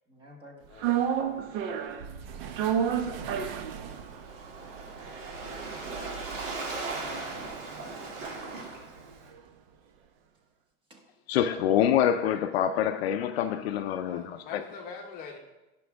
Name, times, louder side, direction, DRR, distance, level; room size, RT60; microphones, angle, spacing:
voice 1, 0.1-2.1 5.8-5.9 10.9-11.0, equal, 15° right, 1.1 m, -54 dB
sound 1, 0.8-9.1 9.4-9.5, right 8 dB, 50° right, 0.8 m, -33 dB
Waves surf, 3.6-9.3, right 3 dB, 80° right, 2.8 m, -38 dB
voice 2, 11.3-14.6, left 10 dB, 55° left, 0.5 m, -26 dB
voice 3, 14.1-15.4, left 5 dB, 25° left, 0.8 m, -43 dB
15.5 x 6.1 x 3.5 m
supercardioid pair, 175°, 38 cm